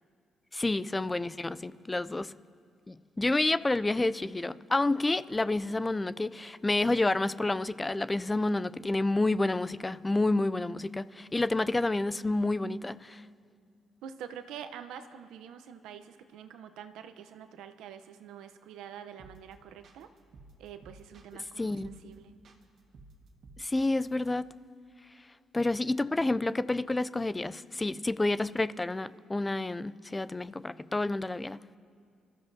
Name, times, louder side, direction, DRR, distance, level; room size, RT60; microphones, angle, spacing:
voice 1, 0.5-2.3 2.9-13.2 21.6-21.9 23.6-24.5 25.5-31.6, left 2 dB, 15° left, 0.3 m, -29 dB
voice 2, 14.0-20.1 20.6-22.4, right 8 dB, 85° right, 0.7 m, -46 dB
sound 1, 19.2-19.5 19.8-21.5 21.8-22.1 22.4-24.3, right 3 dB, 65° right, 1.5 m, -54 dB
27.0 x 14.0 x 2.7 m
cardioid pair, 90°, 0 cm